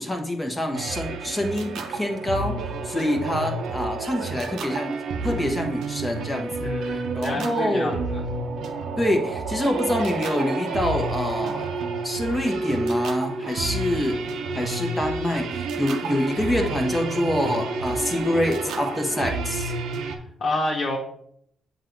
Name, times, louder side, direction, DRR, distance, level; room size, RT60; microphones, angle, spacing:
voice 1, 0.0-2.6 2.8-4.9 5.2-8.0 9.0-11.7 12.0-14.2 14.5-19.7, left 1 dB, 10° left, 2 dB, 1.3 m, -26 dB
sound 1, 0.7-20.2, right 3 dB, 75° right, 0.7 m, -30 dB
voice 2, 6.6-8.2 20.4-21.0, left 2 dB, 55° left, -3 dB, 1.2 m, -28 dB
7.8 x 2.6 x 4.5 m, 0.69 s
cardioid pair, 90°, 0 cm